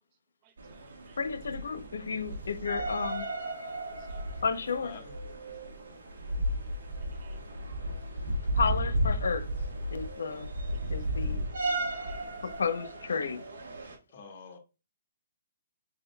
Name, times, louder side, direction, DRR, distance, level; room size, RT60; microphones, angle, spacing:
voice 1, 0.4-1.2 3.9-4.2 5.2-5.3 5.7-5.8 6.5-6.6 7.2-7.4 11.0-11.1 11.7-12.3 12.5-12.6 13.8-13.9, right 9 dB, 30° right, 0.3 m, -62 dB
sound 1, 0.6-14.0, right 1 dB, 80° right, 1.1 m, -34 dB
voice 2, 1.2-3.3 4.4-5.0 8.5-9.5 9.9-10.5 10.9-11.4 12.4-13.4, left 5 dB, 90° left, 0.7 m, -32 dB
voice 3, 4.8-5.1 14.1-14.6, left 5 dB, 40° left, 1.2 m, -46 dB
4.9 x 3.7 x 2.2 m
hypercardioid pair, 160°, 0 cm